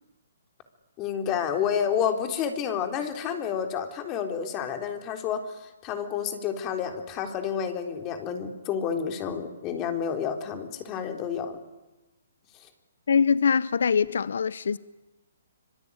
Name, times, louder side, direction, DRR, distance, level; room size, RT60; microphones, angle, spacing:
voice 1, 1.0-11.6, left 7 dB, 25° left, 3.7 m, -30 dB
voice 2, 13.1-14.8, left 6 dB, 75° left, 0.9 m, -23 dB
25.5 x 23.5 x 9.8 m
hypercardioid pair, 155°, 0 cm